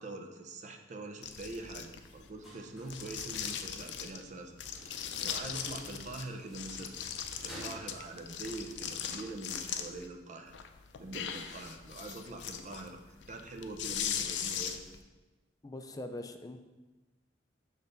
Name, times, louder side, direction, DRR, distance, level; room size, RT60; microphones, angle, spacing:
voice 1, 0.0-4.6 4.8-6.9 7.4-10.5 11.0-13.0 13.3-14.8, right 2 dB, 40° right, 5 dB, 0.6 m, -44 dB
sound 1, 1.2-2.3 2.9-4.2 4.6-6.2 6.5-10.1 10.5-15.0, left 8 dB, 80° left, 0.5 m, -39 dB
sound 2, 1.3-9.2, equal, ahead, 1.9 m, -53 dB
voice 2, 15.6-16.6, left 2 dB, 20° left, 7 dB, 0.4 m, -42 dB
6.5 x 3.3 x 5.2 m, 1.2 s
head